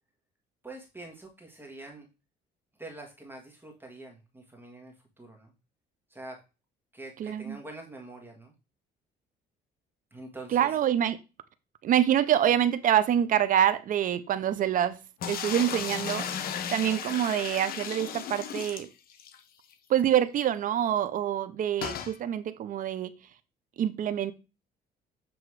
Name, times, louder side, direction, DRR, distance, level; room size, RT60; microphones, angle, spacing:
voice 1, 0.6-2.1 2.8-5.5 6.1-6.4 6.9-8.5 10.1-10.7 12.3-12.5, right 2 dB, 10° right, 1.5 m, -45 dB
voice 2, 7.2-7.6 10.5-11.2 11.8-15.0 15.3-16.3 16.7-18.9 19.9-23.1 23.8-24.3, right 10 dB, 50° right, 0.6 m, -26 dB
sound 1, 15.2-19.4 19.7-19.8 20.0-20.1 21.8-22.2, left 8 dB, 60° left, 0.8 m, -35 dB
7.7 x 3.0 x 4.7 m
cardioid pair, 110°, 17 cm